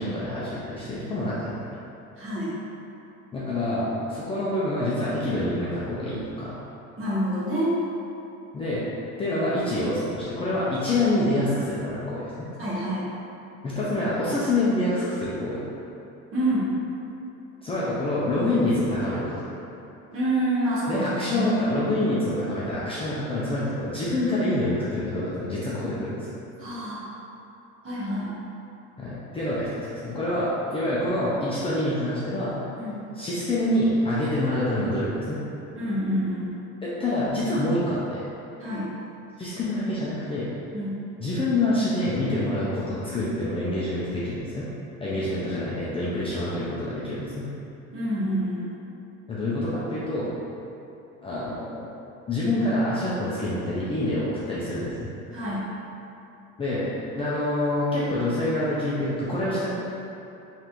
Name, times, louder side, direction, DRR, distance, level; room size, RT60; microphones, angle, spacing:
voice 1, 0.0-1.7 3.3-6.6 8.5-8.8 9.2-12.2 13.6-15.6 17.6-19.4 20.9-26.3 29.0-32.5 33.1-35.4 36.8-38.2 39.4-40.5 41.2-44.7 45.0-47.5 49.3-50.3 51.2-51.9 52.3-55.1 56.6-59.7, left 1 dB, 15° left, -9 dB, 0.4 m, -26 dB
voice 2, 2.2-2.5 7.0-7.7 12.6-13.1 16.3-16.7 20.1-21.5 26.6-27.0 27.8-28.4 32.7-33.1 35.7-36.6 38.6-38.9 40.7-41.0 47.9-48.7 55.3-55.7, right 1 dB, 40° right, -9 dB, 1.2 m, -27 dB
3.7 x 3.2 x 2.9 m, 2.8 s
cardioid pair, 160°, 33 cm